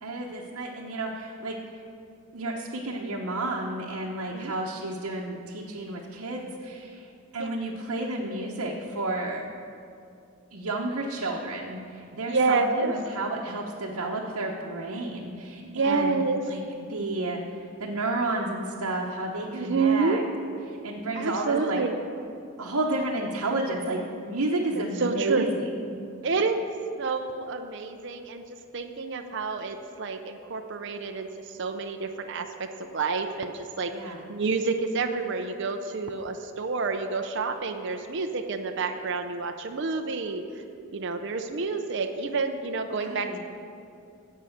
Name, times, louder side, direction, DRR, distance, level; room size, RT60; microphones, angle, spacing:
voice 1, 0.0-1.6 2.3-9.5 10.5-16.2 16.5-16.6 16.9-20.2 20.7-21.8 22.6-26.0 33.9-34.2 42.9-43.4, right 2 dB, 80° right, -2 dB, 1.0 m, -31 dB
voice 2, 12.3-12.9 15.6-16.4 19.5-20.2 21.1-21.9 24.8-25.5 26.2-26.6 27.0-28.4 28.7-40.6 40.9-43.4, right 4 dB, 55° right, 5 dB, 0.6 m, -28 dB
16.0 x 5.6 x 6.4 m, 2.5 s
head